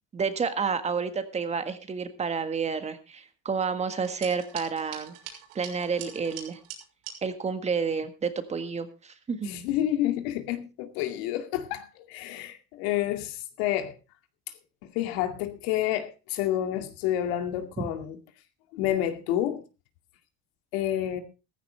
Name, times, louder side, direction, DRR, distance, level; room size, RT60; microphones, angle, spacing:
voice 1, 0.1-5.1 5.5-6.6 7.2-9.5 17.8-17.9, right 5 dB, 20° right, 1.6 m, -30 dB
sound 1, 3.9-7.2, right 9 dB, 75° right, 6.1 m, -43 dB
voice 2, 9.4-13.9 14.9-18.2 18.7-19.6 20.7-21.2, left 12 dB, 90° left, 2.3 m, -29 dB
15.0 x 15.0 x 3.3 m
cardioid pair, 145°, 30 cm